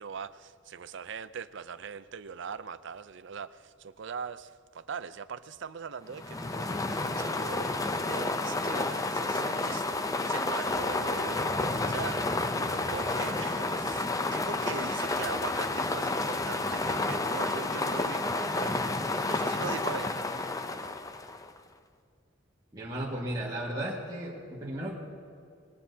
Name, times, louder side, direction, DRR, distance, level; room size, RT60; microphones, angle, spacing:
voice 1, 0.0-7.7 8.0-18.8 19.2-20.1, right 6 dB, 60° right, 14 dB, 0.5 m, -41 dB
sound 1, 6.1-21.6, left 2 dB, 15° left, 0.5 m, -30 dB
voice 2, 22.7-25.0, right 1 dB, 20° right, -6 dB, 1.8 m, -35 dB
20.5 x 17.5 x 2.8 m, 2.3 s
head